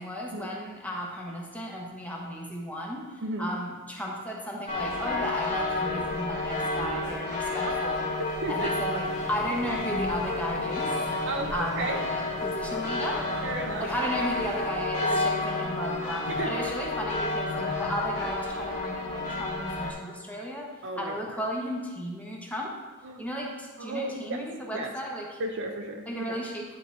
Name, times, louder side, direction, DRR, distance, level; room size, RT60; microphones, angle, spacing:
voice 1, 0.0-8.1 8.5-10.9 11.5-13.2 13.8-20.7 21.0-22.7 23.2-25.4 26.1-26.6, equal, 5° left, -2 dB, 1.2 m, -34 dB
voice 2, 3.2-3.5 7.6-7.8 8.4-8.7 11.2-12.0 13.4-13.9 16.3-16.6 20.8-21.2 23.0-23.3 23.8-24.4 24.7-24.9 25.4-26.4, right 2 dB, 55° right, 3 dB, 0.8 m, -34 dB
sound 1, 4.7-19.9, left 2 dB, 35° left, 2.1 m, -30 dB
11.0 x 4.0 x 4.6 m, 1.3 s
head